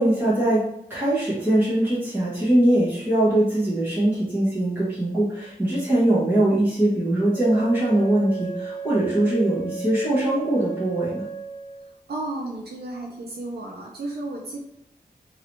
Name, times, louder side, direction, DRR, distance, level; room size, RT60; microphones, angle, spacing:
voice 1, 0.0-11.2, right 1 dB, 15° right, -11 dB, 1.3 m, -22 dB
Wind instrument woodwind instrument, 7.3-12.0, right 5 dB, 15° left, 0.9 m, -35 dB
voice 2, 12.1-14.6, right 2 dB, 85° right, -1 dB, 0.5 m, -33 dB
3.0 x 2.7 x 3.0 m, 0.81 s
wide cardioid pair, 90°, 16 cm